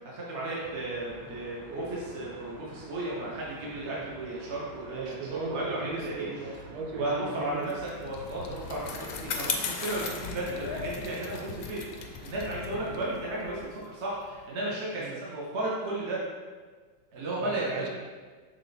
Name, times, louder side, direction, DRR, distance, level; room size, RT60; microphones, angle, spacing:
voice 1, 0.0-6.3 7.0-11.8 12.1-16.2 17.1-17.9, right 2 dB, 45° right, -6 dB, 1.0 m, -34 dB
Traffic noise roadway noise, 0.5-13.0, right 1 dB, 65° right, 1.6 m, -49 dB
voice 2, 4.6-7.7 10.4-10.6 12.9-13.0 15.0-15.2 17.4-17.9, right 4 dB, 85° right, 2 dB, 1.6 m, -38 dB
Bicycle, 7.7-14.4, left 5 dB, 70° left, 0.8 m, -37 dB
6.7 x 3.7 x 4.1 m, 1.5 s
omnidirectional pair, 2.2 m